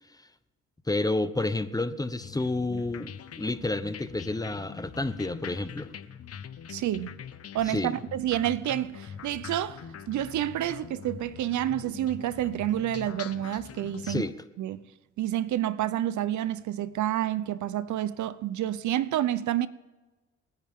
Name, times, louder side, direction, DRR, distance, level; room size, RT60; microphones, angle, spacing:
voice 1, 0.9-5.9 7.7-7.9 14.0-14.3, left 2 dB, 10° left, 1.0 m, -30 dB
sound 1, 2.2-14.3, left 8 dB, 55° left, 1.1 m, -43 dB
voice 2, 6.7-7.1 7.5-9.8 10.1-14.3 14.6-14.9 15.2-19.7, right 12 dB, 70° right, 0.8 m, -29 dB
28.5 x 10.5 x 3.7 m
cardioid pair, 90°, 30 cm